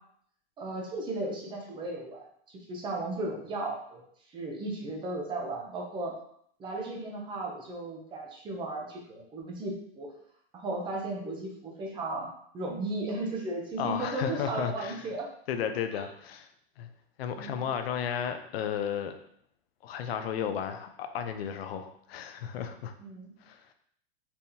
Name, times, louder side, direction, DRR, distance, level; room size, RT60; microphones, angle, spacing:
voice 1, 0.6-2.3 2.7-4.0 4.3-6.1 6.6-10.1 10.5-15.3 15.9-16.1 17.4-17.6 23.0-23.3, right 2 dB, 15° right, 0 dB, 0.7 m, -35 dB
voice 2, 13.8-15.0 15.5-16.5 16.8-16.9 17.2-19.1 19.8-22.9 23.5-23.7, left 8 dB, 65° left, 8 dB, 0.6 m, -33 dB
4.3 x 3.5 x 2.8 m, 0.65 s
supercardioid pair, 155°, 32 cm